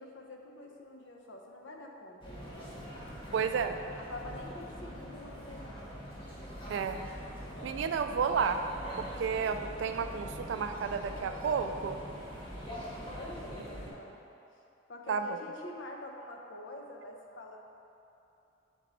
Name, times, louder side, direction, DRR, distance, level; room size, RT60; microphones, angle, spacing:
voice 1, 0.0-3.6 4.0-6.0 13.1-14.2 14.9-17.6, left 1 dB, 75° left, 1 dB, 0.7 m, -47 dB
sound 1, 2.2-13.9, equal, 25° left, 1.1 m, -44 dB
voice 2, 3.3-3.8 6.7-7.0 7.6-8.6 9.0-12.0 15.1-15.3, right 6 dB, 65° right, 8 dB, 0.3 m, -31 dB
Engine, 6.4-13.9, right 1 dB, 10° right, 0.9 m, -51 dB
6.2 x 4.2 x 4.1 m, 2.8 s
head